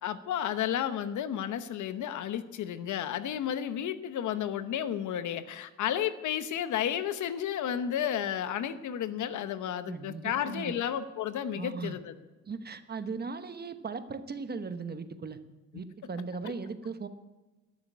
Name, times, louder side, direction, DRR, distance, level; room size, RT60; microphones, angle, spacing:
voice 1, 0.0-12.1, left 10 dB, 75° left, 12 dB, 0.9 m, -32 dB
voice 2, 9.9-10.7 11.5-12.0 12.5-15.4 15.7-17.1, right 4 dB, 35° right, 10 dB, 1.0 m, -38 dB
13.0 x 6.8 x 9.5 m, 1.2 s
cardioid pair, 90°, 30 cm